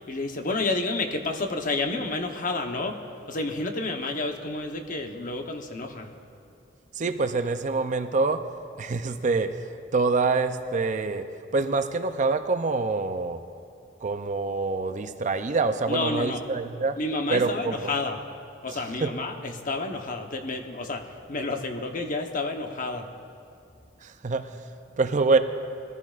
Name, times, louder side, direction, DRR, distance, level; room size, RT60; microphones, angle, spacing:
voice 1, 0.1-3.0 3.3-6.1 15.9-16.4 17.0-18.2 18.6-23.1, left 2 dB, 45° left, 4 dB, 1.0 m, -30 dB
voice 2, 6.9-8.4 8.8-9.6 9.9-11.3 11.5-13.4 14.0-17.0 17.3-17.9 19.0-19.1 24.0-24.5 25.0-25.4, right 3 dB, 40° right, 9 dB, 0.5 m, -25 dB
22.0 x 14.5 x 2.5 m, 2.5 s
head